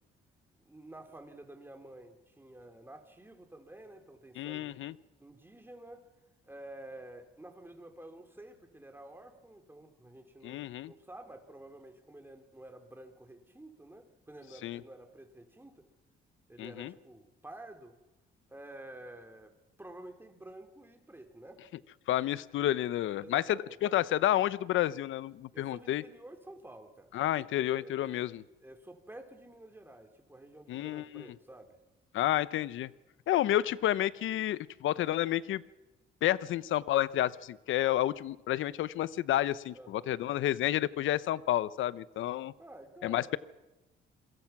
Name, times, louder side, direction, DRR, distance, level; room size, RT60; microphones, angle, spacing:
voice 1, 0.6-4.7 5.2-6.0 6.4-15.9 16.5-18.0 18.5-19.5 19.8-21.6 23.2-23.8 25.5-27.2 27.8-28.3 28.6-31.8 39.7-40.1 42.6-43.3, right 1 dB, 10° right, 5 dB, 3.8 m, -50 dB
voice 2, 4.4-4.9 10.4-10.9 14.6-14.8 16.6-16.9 22.1-23.4 23.8-26.0 27.1-28.4 30.7-31.2 32.1-32.9 33.3-35.6 36.2-42.5 43.0-43.4, left 13 dB, 80° left, 17 dB, 0.9 m, -30 dB
27.0 x 22.5 x 6.1 m, 1.0 s
cardioid pair, 90°, 20 cm